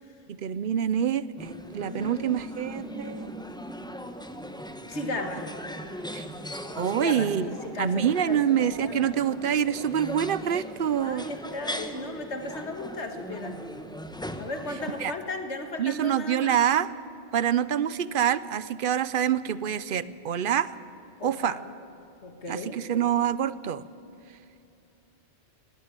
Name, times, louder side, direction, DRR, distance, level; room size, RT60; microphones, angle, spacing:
voice 1, 0.3-3.3 6.1-6.2 6.8-7.5 7.8-11.3 15.0-15.1 15.8-16.9 17.3-20.8 21.2-21.6 22.5-23.8, right 9 dB, 55° right, 17 dB, 0.8 m, -26 dB
sound 1, 1.4-15.1, equal, 5° left, 0.9 m, -39 dB
voice 2, 1.8-3.3 4.9-5.5 6.9-8.0 8.3-8.4 8.8-9.1 11.0-13.7 14.4-16.6 21.2-21.6 22.2-22.8, left 2 dB, 80° left, 6 dB, 2.1 m, -36 dB
20.0 x 17.5 x 8.9 m, 2.7 s
omnidirectional pair, 1.1 m